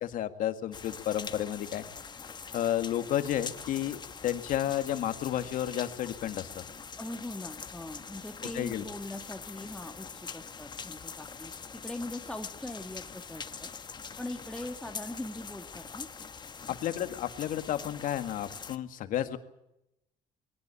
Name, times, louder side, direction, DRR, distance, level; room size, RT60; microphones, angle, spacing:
voice 1, 0.0-1.8 2.5-6.6 8.5-8.8 16.7-19.4, left 11 dB, 70° left, 9 dB, 1.9 m, -32 dB
sound 1, 0.7-18.8, left 5 dB, 30° left, 1.3 m, -44 dB
voice 2, 7.0-11.5 11.8-13.7 14.2-16.1 16.7-16.8, left 1 dB, 5° left, 2 dB, 1.8 m, -41 dB
21.5 x 18.5 x 8.5 m, 0.87 s
cardioid pair, 100°, 14 cm